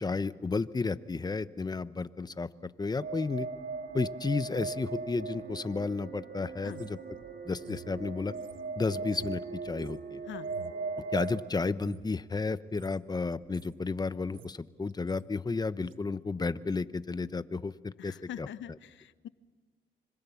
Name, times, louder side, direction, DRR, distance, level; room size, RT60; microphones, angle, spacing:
voice 1, 0.0-3.5 3.9-7.0 7.4-8.3 8.8-10.2 11.1-18.5, left 4 dB, 20° left, 14 dB, 0.9 m, -32 dB
sound 1, 3.0-11.4, right 4 dB, 55° right, 3.1 m, -39 dB
sound 2, 6.7-11.4 11.7-12.2 12.7-13.0 13.3-13.8 14.1-14.6 14.9-15.3 15.8-16.0, right 11 dB, 80° right, 1.2 m, -53 dB
voice 2, 18.0-19.3, left 10 dB, 70° left, 14 dB, 0.9 m, -43 dB
25.5 x 25.0 x 7.1 m, 1.4 s
cardioid pair, 90°, 20 cm